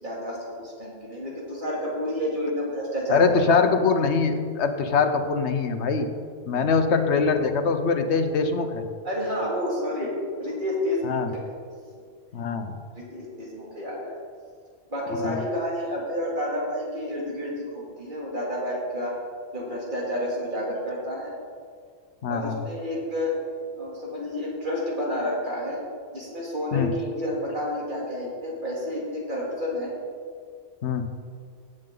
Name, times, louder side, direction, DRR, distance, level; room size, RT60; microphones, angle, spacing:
voice 1, 0.0-3.3 9.0-10.1 10.4-11.5 12.9-14.2 14.9-19.2 19.5-21.3 22.3-23.3 23.8-25.8 26.1-29.9, left 1 dB, 45° right, -5 dB, 3.0 m, -30 dB
voice 2, 3.1-6.1 6.5-8.9 11.0-11.3 12.3-12.8 15.2-15.4 22.2-22.6 26.7-26.9 30.8-31.0, left 5 dB, 75° left, 7 dB, 1.1 m, -23 dB
16.5 x 7.7 x 3.9 m, 2.1 s
omnidirectional pair, 1.2 m